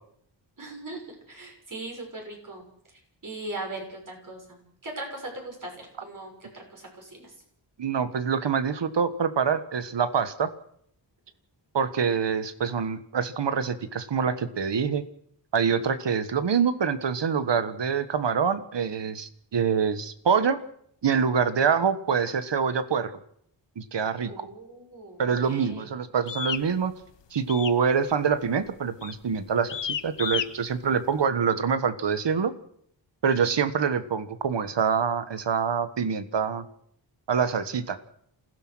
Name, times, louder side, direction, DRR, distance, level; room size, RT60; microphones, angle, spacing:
voice 1, 0.6-1.0 1.3-2.6 3.2-7.3 24.3-25.9, right 2 dB, 45° right, 1 dB, 6.5 m, -39 dB
voice 2, 7.8-10.5 11.7-15.0 15.5-20.6 21.0-23.1 23.8-24.5 25.2-26.9 27.3-32.5 33.2-36.6 37.3-38.0, right 6 dB, 65° right, 12 dB, 1.5 m, -25 dB
sound 1, 26.3-26.7 27.5-27.8 28.1-28.5 29.0-29.2 29.7-30.5, left 9 dB, 70° left, 1.0 m, -31 dB
28.0 x 16.0 x 6.3 m, 0.69 s
wide cardioid pair, 130°, 45 cm